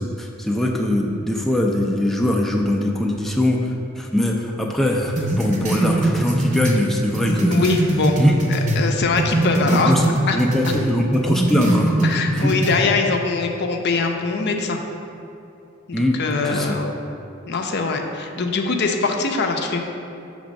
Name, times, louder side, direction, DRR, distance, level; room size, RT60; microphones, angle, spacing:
voice 1, 0.0-7.7 8.2-8.4 9.6-10.0 10.3-12.0 12.3-12.5 15.9-16.2 16.5-16.7, left 1 dB, ahead, -1 dB, 0.4 m, -21 dB
sound 1, 5.2-8.8 9.2-10.8 11.1-12.8, right 1 dB, 40° right, 0.8 m, -22 dB
voice 2, 7.5-8.2 8.5-9.9 10.3-10.4 12.0-14.8 15.9-16.9 17.5-19.8, left 4 dB, 55° left, 3 dB, 0.5 m, -22 dB
6.3 x 3.4 x 5.1 m, 2.7 s
head